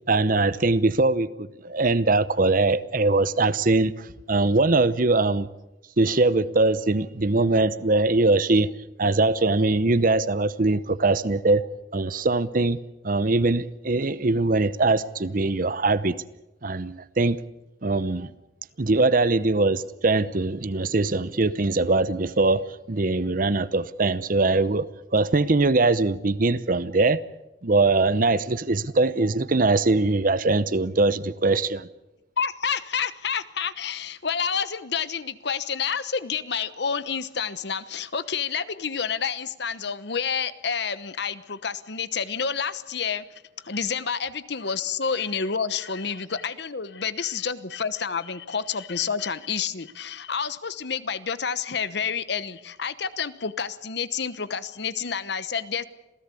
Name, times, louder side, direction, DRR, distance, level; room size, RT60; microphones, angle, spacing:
voice 1, 0.1-5.5 6.0-8.7 9.0-11.7 11.9-16.2 16.6-17.4 17.8-18.3 18.8-27.2 27.6-31.9, right 3 dB, 45° right, 0.8 m, -22 dB
voice 2, 32.4-43.2 43.6-55.8, left 6 dB, 60° left, 1.0 m, -29 dB
27.0 x 17.0 x 8.4 m
head